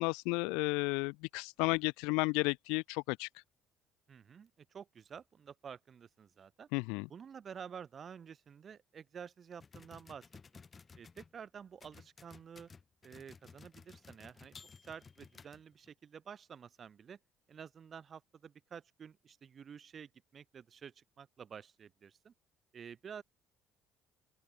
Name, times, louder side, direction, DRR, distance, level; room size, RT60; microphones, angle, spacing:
voice 1, 0.0-3.3 6.7-7.1, left 30 dB, 65° left, 0.5 m, -33 dB
voice 2, 4.1-6.7 7.1-10.3 10.5-10.6 11.0-12.7 13.0-17.2 17.5-22.3 22.7-23.2, right 7 dB, 40° right, 7.9 m, -50 dB
sound 1, 9.6-11.3 11.8-15.9, left 5 dB, 30° left, 1.6 m, -56 dB
open air
figure-of-eight pair, 55°, 0 cm